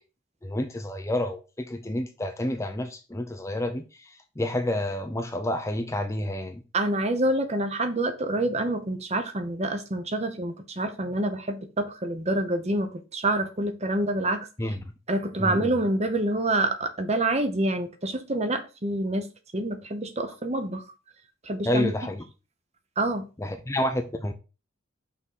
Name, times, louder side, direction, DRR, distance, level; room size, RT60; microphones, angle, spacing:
voice 1, 0.4-4.1 4.4-6.6 14.6-14.8 15.4-15.7 21.6-22.2 23.4-24.3, left 1 dB, 15° left, 0.5 m, -29 dB
voice 2, 6.7-14.5 15.1-19.3 19.5-20.8 21.4-21.9 23.0-23.2, right 1 dB, 30° right, 0.8 m, -27 dB
5.9 x 3.8 x 5.8 m
head